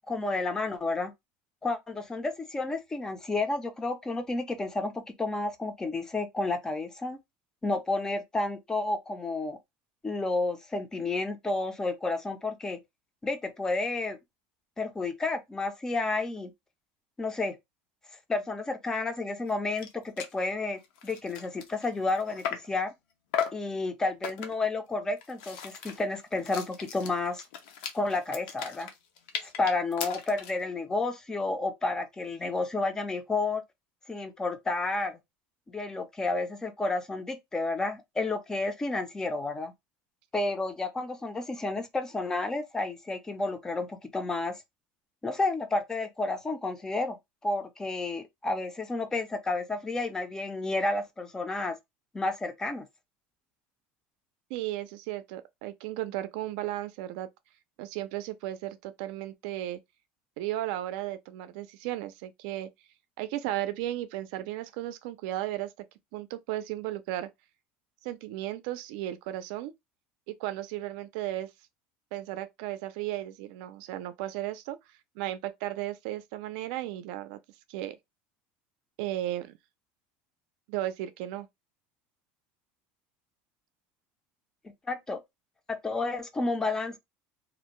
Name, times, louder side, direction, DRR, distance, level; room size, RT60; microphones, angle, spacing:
voice 1, 0.1-1.1 1.6-7.2 7.6-9.6 10.0-12.8 13.2-14.2 14.8-16.5 17.2-17.6 18.3-22.9 23.5-27.4 27.9-28.9 29.4-33.6 34.1-35.2 35.7-39.7 40.3-44.6 45.2-47.2 47.4-51.8 52.1-52.8 84.9-85.2 85.7-87.0, left 3 dB, 15° left, 0.4 m, -31 dB
sound 1, 19.5-19.6 19.8-19.9 20.2-20.4 20.8-22.8 23.3-23.7 24.2-24.7 25.2-30.6, left 8 dB, 80° left, 0.6 m, -37 dB
voice 2, 54.5-57.3 57.8-59.8 60.4-62.7 63.2-65.7 66.1-67.3 68.0-69.7 70.3-71.5 72.1-74.8 75.2-77.4 77.7-78.0 79.0-79.5 80.7-81.5, right 14 dB, 75° right, 0.4 m, -35 dB
2.5 x 2.1 x 3.0 m
cardioid pair, 150°, 5 cm